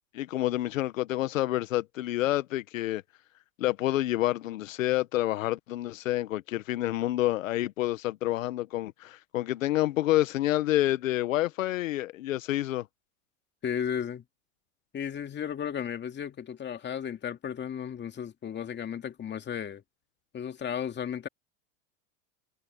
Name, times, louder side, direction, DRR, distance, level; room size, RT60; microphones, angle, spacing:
voice 1, 0.2-3.0 3.6-12.9, left 15 dB, 85° left, 1.3 m, -28 dB
voice 2, 13.6-14.2 14.9-19.8 20.3-21.3, left 8 dB, 25° left, 2.5 m, -34 dB
hypercardioid pair, 110°, 39 cm